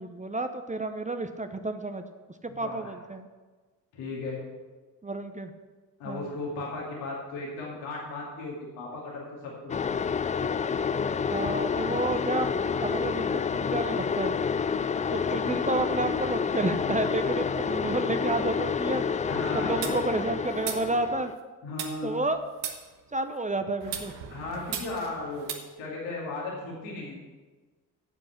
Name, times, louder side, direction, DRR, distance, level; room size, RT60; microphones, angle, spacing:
voice 1, 0.0-2.0 2.4-3.3 5.0-5.5 6.1-6.3 11.3-12.5 12.8-14.4 15.1-19.0 19.5-21.3 22.0-22.4 23.1-24.1, right 2 dB, 15° right, 8 dB, 0.8 m, -30 dB
voice 2, 2.5-2.9 3.9-4.4 6.0-10.0 15.4-15.6 19.2-19.8 21.6-22.1 24.3-25.5 25.8-27.2, left 2 dB, 70° left, -4 dB, 2.7 m, -36 dB
sound 1, 9.7-21.3, left 6 dB, 20° left, 0.3 m, -29 dB
sound 2, 19.8-21.4 21.8-23.4 23.8-25.5, right 8 dB, 70° right, 1.2 m, -38 dB
9.7 x 7.6 x 5.9 m, 1.3 s
hypercardioid pair, 45°, 47 cm